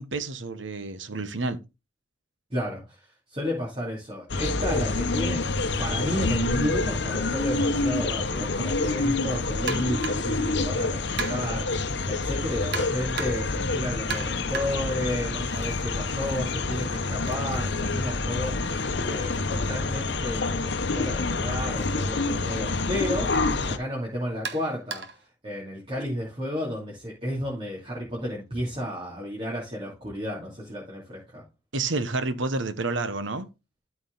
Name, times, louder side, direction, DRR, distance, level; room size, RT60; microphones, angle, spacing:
voice 1, 0.0-1.6 31.7-33.5, right 3 dB, 75° right, 1.1 m, -29 dB
voice 2, 2.5-5.4 5.8-31.4, equal, 30° right, 3.0 m, -32 dB
sound 1, 4.3-23.8, left 3 dB, 60° left, 0.9 m, -27 dB
sound 2, 9.7-10.4 11.2-11.7 12.7-13.6 14.1-15.9 16.2-20.1 21.1-21.3 21.8-21.9 22.8-22.9 24.4-25.3, right 5 dB, 60° right, 1.5 m, -38 dB
13.0 x 4.8 x 4.0 m
head